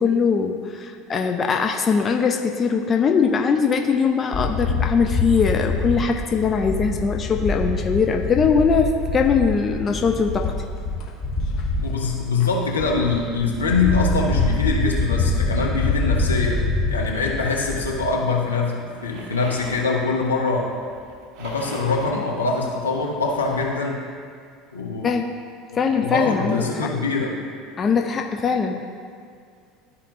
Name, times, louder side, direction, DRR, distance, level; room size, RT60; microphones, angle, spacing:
voice 1, 0.0-10.5 25.0-25.3 25.7-26.9 27.8-28.9, left 5 dB, 30° left, 3 dB, 0.5 m, -21 dB
sound 1, 4.3-18.1, left 3 dB, 50° left, 1.1 m, -25 dB
voice 2, 11.8-20.7 21.4-24.0 24.7-25.1 25.7-27.3, left 4 dB, 80° left, -1 dB, 0.9 m, -23 dB
sound 2, 18.9-23.8, right 2 dB, 55° right, 0.8 m, -42 dB
12.5 x 4.3 x 2.6 m, 2.2 s
figure-of-eight pair, 70°, 0 cm